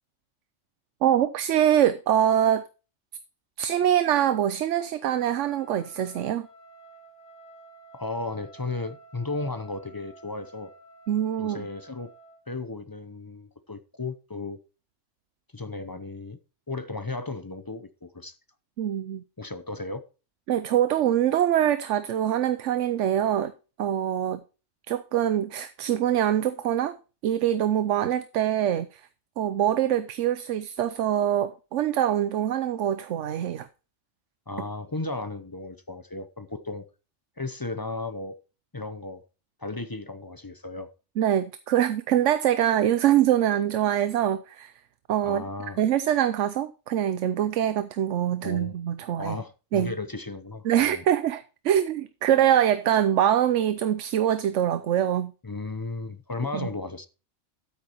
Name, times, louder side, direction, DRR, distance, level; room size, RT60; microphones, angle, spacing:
voice 1, 1.0-2.6 3.6-6.5 11.1-11.7 18.8-19.2 20.5-23.5 23.8-24.4 24.9-27.0 27.2-29.0 29.4-33.7 41.2-44.7 45.1-45.4 45.8-49.4 49.7-49.9 50.6-55.3 56.5-56.7, right 10 dB, 90° right, 1.0 m, -24 dB
Trumpet, 5.1-12.4, right 2 dB, 20° right, 2.2 m, -51 dB
voice 2, 7.9-10.7 11.4-12.1 12.5-14.6 15.5-16.4 16.7-18.4 19.4-20.0 34.5-36.8 37.4-38.4 38.7-39.2 39.6-40.9 45.2-45.8 48.4-48.7 49.2-51.0 55.4-57.1, left 3 dB, 25° left, 0.6 m, -35 dB
12.5 x 8.5 x 3.0 m
omnidirectional pair, 1.2 m